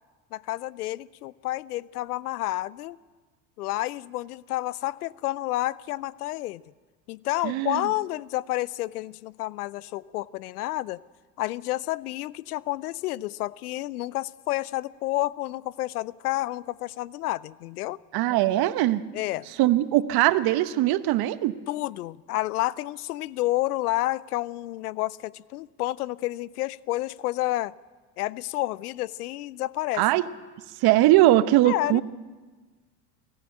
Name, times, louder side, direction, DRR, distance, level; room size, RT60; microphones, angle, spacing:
voice 1, 0.3-3.0 3.6-6.6 7.1-11.0 11.4-18.0 19.1-19.5 21.7-27.7 28.2-30.1 31.6-32.0, left 17 dB, 80° left, 23 dB, 0.6 m, -30 dB
voice 2, 7.4-7.8 18.1-19.0 19.6-21.5 30.0-30.2 30.8-32.0, right 15 dB, 55° right, 13 dB, 1.1 m, -21 dB
23.0 x 14.5 x 8.9 m, 1.4 s
hypercardioid pair, 75°, 45 cm